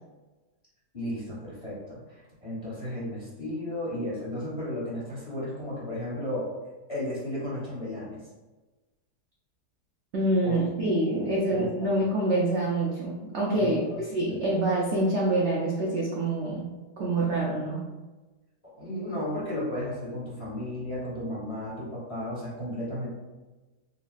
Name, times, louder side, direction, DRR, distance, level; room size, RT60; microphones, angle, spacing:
voice 1, 0.9-6.5 6.9-8.2 10.4-10.6 11.5-12.0 13.6-14.0 14.3-14.4 18.8-23.1, left 1 dB, 25° left, -9 dB, 0.9 m, -34 dB
voice 2, 10.1-17.9, right 1 dB, 75° right, -4 dB, 0.6 m, -26 dB
4.0 x 2.0 x 2.3 m, 1.2 s
omnidirectional pair, 1.8 m